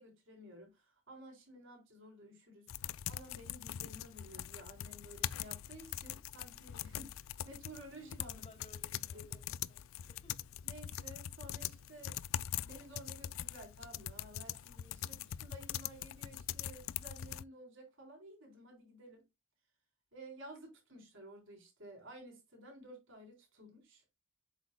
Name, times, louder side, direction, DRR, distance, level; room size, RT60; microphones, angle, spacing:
voice 1, 0.0-8.5 9.1-9.5 10.6-12.2 12.6-19.2 20.1-24.0, right 1 dB, 60° right, 3.9 m, -54 dB
sound 1, 2.7-17.4, left 11 dB, 70° left, 0.3 m, -42 dB
voice 2, 8.2-10.3, left 2 dB, 30° left, 2.2 m, -60 dB
8.1 x 6.7 x 2.2 m
head